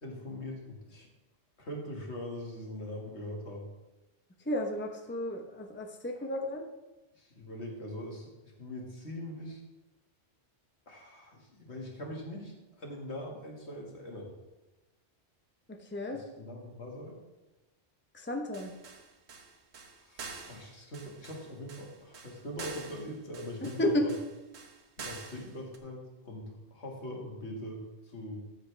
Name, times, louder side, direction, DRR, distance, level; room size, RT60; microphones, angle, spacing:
voice 1, 0.0-1.1 1.6-3.7 6.2-6.3 7.1-9.6 10.9-14.3 16.1-17.2 20.0-24.1 25.0-28.4, left 1 dB, 75° left, 0 dB, 2.3 m, -42 dB
voice 2, 4.5-6.6 15.7-16.2 18.1-18.7 23.8-24.1, left 1 dB, 10° left, 2 dB, 0.9 m, -32 dB
sound 1, 18.5-25.8, right 4 dB, 75° right, 1.3 m, -47 dB
14.0 x 8.2 x 3.4 m, 1.1 s
omnidirectional pair, 1.1 m